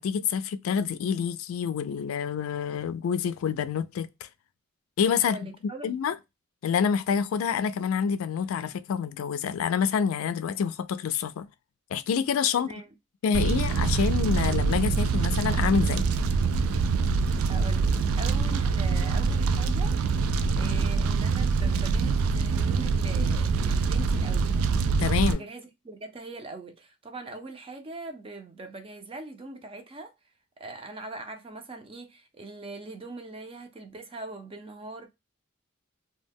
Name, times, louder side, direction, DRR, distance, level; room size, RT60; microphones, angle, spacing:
voice 1, 0.0-4.3 5.0-5.5 5.8-6.1 6.6-11.5 11.9-12.7 13.2-16.1 25.0-25.4, left 7 dB, 85° left, 0.3 m, -27 dB
voice 2, 5.2-6.0 12.5-12.9 17.5-20.0 20.6-24.6 25.3-30.1 30.6-35.1, right 3 dB, 25° right, 0.5 m, -41 dB
Fire, 13.3-25.3, right 4 dB, 90° right, 0.3 m, -25 dB
2.2 x 2.1 x 3.4 m
head